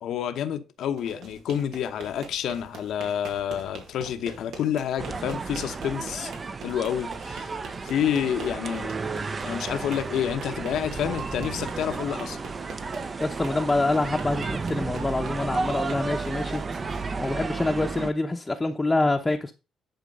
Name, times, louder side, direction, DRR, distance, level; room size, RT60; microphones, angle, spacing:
voice 1, 0.0-6.3 6.6-7.5 7.8-8.9 9.4-12.4, left 9 dB, 75° left, 1.0 m, -29 dB
corriendo loseta, 0.8-17.8, right 4 dB, 80° right, 2.3 m, -45 dB
sound 1, 5.0-18.1, right 4 dB, 35° right, 0.8 m, -32 dB
voice 2, 13.2-16.6 17.2-19.5, left 2 dB, 20° left, 0.9 m, -26 dB
10.5 x 4.5 x 5.4 m
cardioid pair, 90°, 0 cm